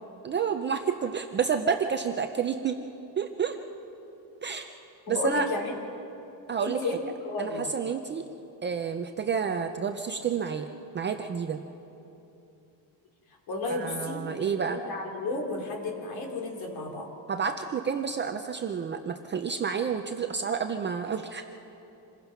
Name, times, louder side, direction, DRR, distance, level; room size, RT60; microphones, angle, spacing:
voice 1, 0.2-2.8 3.2-3.6 4.4-4.7 5.1-5.5 6.5-6.8 7.4-8.2 8.6-10.7 10.9-11.6 13.7-14.8 17.3-21.5, right 6 dB, 25° right, 5 dB, 0.5 m, -29 dB
voice 2, 5.1-5.7 6.6-7.0 7.3-7.7 13.5-17.1, left 2 dB, 50° left, 1 dB, 3.5 m, -33 dB
27.0 x 20.5 x 5.9 m, 2.9 s
cardioid pair, 180°, 47 cm